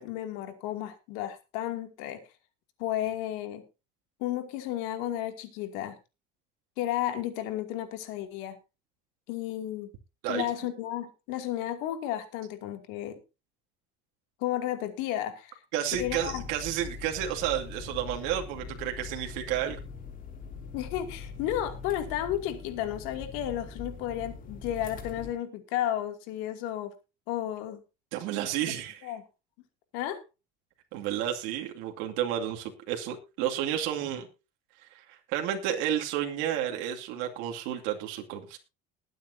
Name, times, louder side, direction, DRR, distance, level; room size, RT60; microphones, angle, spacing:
voice 1, 0.0-2.2 2.8-3.6 4.2-6.0 6.8-8.6 9.3-9.9 10.3-13.2 14.4-15.6 16.0-16.4 20.7-26.9 27.3-27.8 29.0-29.2 29.9-30.2, left 12 dB, 85° left, 7 dB, 2.5 m, -33 dB
voice 2, 15.7-19.8 28.1-29.1 30.9-34.3 34.8-38.6, right 10 dB, 80° right, 1 dB, 2.4 m, -31 dB
sound 1, 15.9-25.3, left 4 dB, 40° left, 2.9 m, -42 dB
20.5 x 9.3 x 2.7 m, 0.28 s
cardioid pair, 135°, 20 cm